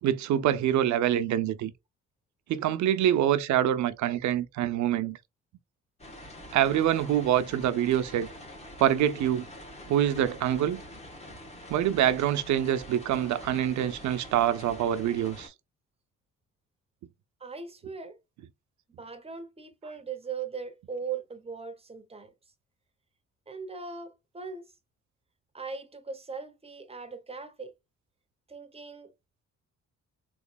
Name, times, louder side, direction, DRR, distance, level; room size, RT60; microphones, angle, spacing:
voice 1, 0.0-1.7 2.5-5.2 6.5-8.3 8.8-9.5 9.9-10.8 11.7-15.5, right 11 dB, 70° right, 0.5 m, -25 dB
sound 1, 6.0-15.5, left 1 dB, 20° left, 1.2 m, -45 dB
voice 2, 17.4-18.2 19.0-22.3 23.5-24.6 25.5-27.7 28.5-29.1, right 5 dB, 20° right, 0.8 m, -39 dB
3.7 x 3.0 x 2.2 m
cardioid pair, 90°, 30 cm